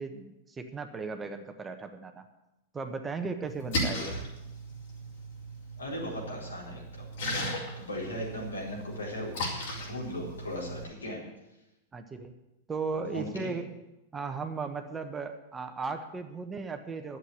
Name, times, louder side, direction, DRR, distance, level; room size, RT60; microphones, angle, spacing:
voice 1, 0.0-2.3 2.7-4.1 11.9-12.3 12.7-13.7 14.1-17.2, right 4 dB, 15° right, 6 dB, 1.2 m, -36 dB
Splash splatter, 3.5-10.8, equal, 60° left, 4.2 m, -36 dB
voice 2, 5.8-7.1 7.8-9.4 9.9-11.2 13.0-13.5, left 1 dB, 80° left, -3 dB, 4.4 m, -38 dB
11.5 x 7.9 x 9.3 m, 0.95 s
figure-of-eight pair, 95°, 0 cm